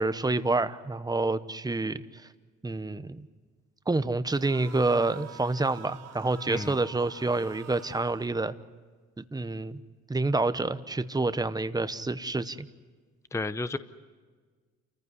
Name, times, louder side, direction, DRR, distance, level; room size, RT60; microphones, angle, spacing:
voice 1, 0.0-2.2 2.6-3.3 3.9-8.5 9.2-9.8 10.1-12.7, right 3 dB, 15° right, 12 dB, 0.9 m, -28 dB
sound 1, 4.3-8.3, right 8 dB, 60° right, 1.7 m, -48 dB
voice 2, 13.3-13.8, left 3 dB, 10° left, 13 dB, 0.7 m, -31 dB
28.5 x 15.0 x 9.6 m, 1.5 s
cardioid pair, 90°, 30 cm